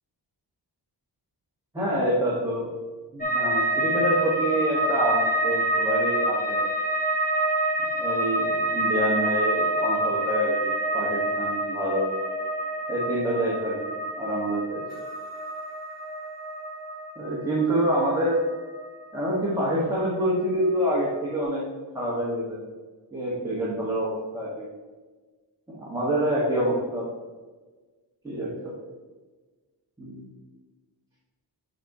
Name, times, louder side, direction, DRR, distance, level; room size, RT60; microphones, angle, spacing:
voice 1, 1.7-2.7 3.1-6.6 8.0-12.1 12.9-14.8 17.2-18.4 19.1-21.6 21.9-22.6 23.1-24.7 25.7-27.1 28.2-28.7 30.0-30.3, right 1 dB, 10° right, -8 dB, 1.5 m, -27 dB
sound 1, 3.2-20.3 20.6-21.3, right 1 dB, 20° left, 1.3 m, -27 dB
7.2 x 4.0 x 4.8 m, 1.3 s
wide cardioid pair, 160°, 43 cm